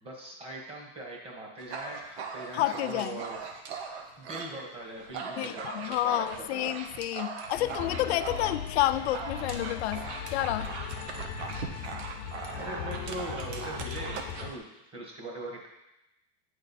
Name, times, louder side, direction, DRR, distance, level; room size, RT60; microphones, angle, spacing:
voice 1, 0.0-3.6 4.2-6.7 12.6-14.7 14.9-15.7, right 2 dB, 15° right, -1 dB, 1.3 m, -41 dB
Dog, 1.6-4.5 4.9-14.6, right 5 dB, 80° right, 1.0 m, -40 dB
voice 2, 2.5-3.2 5.4-10.7, left 14 dB, 70° left, 13 dB, 0.5 m, -30 dB
sound 1, 7.5-14.5, left 8 dB, 50° left, 0.8 m, -38 dB
8.6 x 3.3 x 4.2 m, 0.89 s
supercardioid pair, 150°, 33 cm